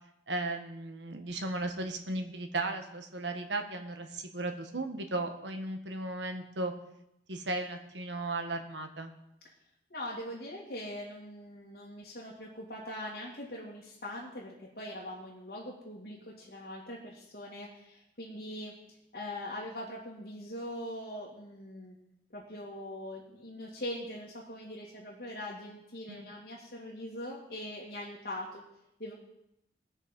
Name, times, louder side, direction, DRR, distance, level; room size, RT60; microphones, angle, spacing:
voice 1, 0.3-6.7 7.3-9.1 26.1-26.3, right 2 dB, 80° right, 6 dB, 1.4 m, -36 dB
voice 2, 9.9-18.7 19.1-22.0 22.3-28.6 29.0-29.1, left 1 dB, 55° left, -6 dB, 2.3 m, -42 dB
18.5 x 6.4 x 5.3 m, 0.83 s
head